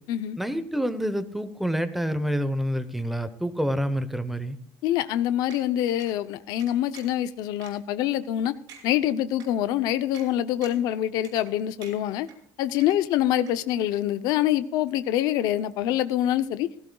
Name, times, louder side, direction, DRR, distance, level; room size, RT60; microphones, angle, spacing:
voice 1, 0.4-4.6, equal, ahead, 0.9 m, -27 dB
voice 2, 4.8-8.5 8.8-12.3 12.6-16.7, left 12 dB, 70° left, 0.6 m, -25 dB
sound 1, 5.5-5.6 6.0-6.1 6.6-7.2 7.6-7.7 8.2-8.3 8.7-8.8 9.4-9.5 10.1-10.3 10.6-10.9 11.2-11.5 11.8-12.4 12.8-13.2 13.5-13.6, right 7 dB, 75° right, 5.3 m, -47 dB
16.5 x 15.5 x 2.3 m
cardioid pair, 160°, 7 cm